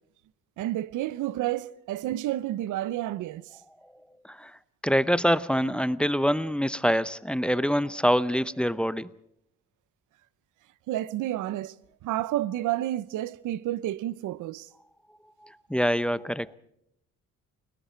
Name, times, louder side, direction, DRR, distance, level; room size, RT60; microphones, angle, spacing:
voice 1, 0.6-3.4 10.9-11.7 12.0-14.7, right 14 dB, 85° right, 0.7 m, -30 dB
voice 2, 4.2-9.1 15.4-16.5, equal, 5° left, 0.8 m, -25 dB
30.0 x 19.0 x 4.5 m
cardioid pair, 90°, 30 cm